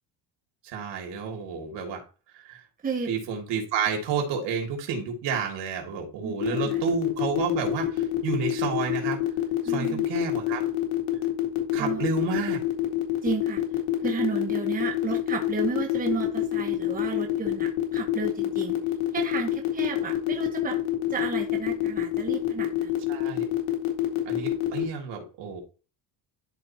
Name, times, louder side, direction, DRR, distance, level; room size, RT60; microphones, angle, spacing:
voice 1, 0.6-2.0 2.3-2.6 3.1-9.2 9.6-10.6 11.7-12.6 23.1-23.5 24.2-25.6, right 6 dB, 75° right, 1 dB, 3.0 m, -30 dB
voice 2, 6.2-6.9 9.6-10.1 11.8-12.0 13.2-18.9 19.1-20.8 21.1-23.0, right 4 dB, 20° right, 1 dB, 1.4 m, -32 dB
sound 1, 6.4-24.8, left 14 dB, 75° left, 2.1 m, -26 dB
12.5 x 4.3 x 2.9 m, 0.35 s
cardioid pair, 145°, 44 cm